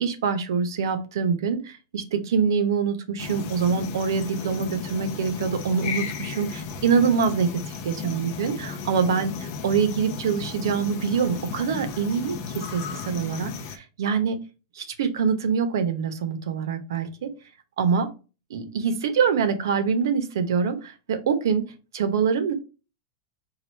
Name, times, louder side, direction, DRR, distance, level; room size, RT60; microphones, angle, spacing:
voice 1, 0.0-7.5 7.9-14.4 14.7-17.3 17.8-18.1 18.5-21.6 21.9-22.5, right 6 dB, 80° right, 10 dB, 0.8 m, -25 dB
sound 1, 3.2-13.8, left 6 dB, 40° left, 0.6 m, -35 dB
4.7 x 2.4 x 4.4 m, 0.32 s
supercardioid pair, 175°, 2 cm